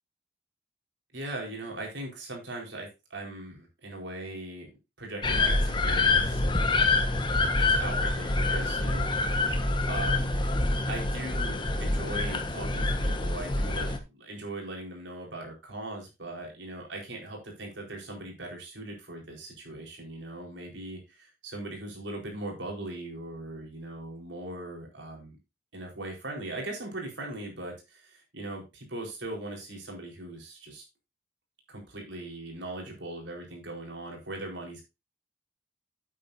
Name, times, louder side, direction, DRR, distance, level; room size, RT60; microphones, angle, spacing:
voice 1, 1.1-4.7 5.0-7.1 7.6-9.5 9.9-10.3 10.9-25.4 25.7-30.8 31.7-34.8, right 2 dB, 75° right, 1 dB, 4.2 m, -40 dB
sound 1, 5.2-14.0, left 2 dB, 25° left, 1.2 m, -26 dB
9.2 x 8.8 x 2.6 m, 0.25 s
head